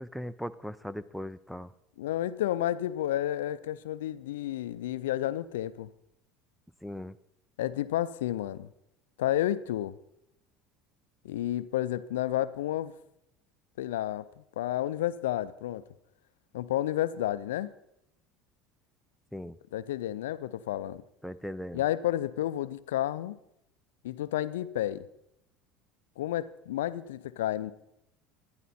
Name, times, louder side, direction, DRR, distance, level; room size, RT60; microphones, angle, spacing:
voice 1, 0.0-1.7 6.8-7.2 19.3-19.6 21.2-21.8, equal, ahead, 0.5 m, -38 dB
voice 2, 2.0-5.9 7.6-8.7 9.2-9.9 11.2-12.9 13.8-14.3 14.6-15.8 16.5-17.7 19.7-21.0 21.7-23.4 24.0-25.0 26.2-27.7, left 13 dB, 85° left, 0.4 m, -31 dB
11.5 x 11.0 x 4.2 m
supercardioid pair, 90°, 0 cm